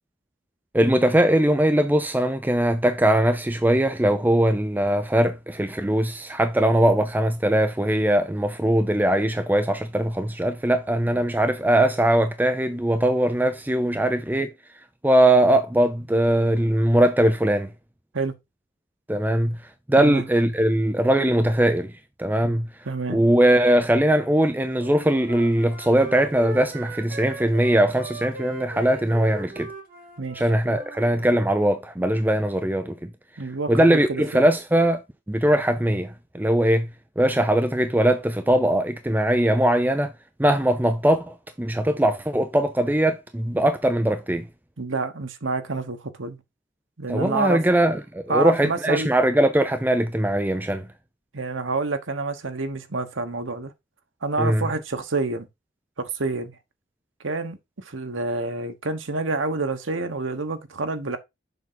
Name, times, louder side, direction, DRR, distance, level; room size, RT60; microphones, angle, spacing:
voice 1, 0.7-14.5 15.0-17.7 19.1-19.6 19.9-21.9 22.2-22.7 23.1-29.7 30.3-33.1 33.7-35.0 35.3-36.9 37.2-40.1 40.4-44.5 47.1-50.9 54.4-54.7, right 1 dB, 10° right, 0.6 m, -21 dB
voice 2, 22.9-23.2 30.2-30.4 33.4-34.4 44.8-46.4 47.0-47.6 48.3-49.1 51.3-53.7 54.2-55.5 56.0-56.5 57.2-57.6 57.8-61.2, right 3 dB, 90° right, 1.1 m, -28 dB
Wind instrument woodwind instrument, 24.7-31.1, right 3 dB, 50° right, 2.2 m, -39 dB
7.1 x 5.7 x 4.0 m
head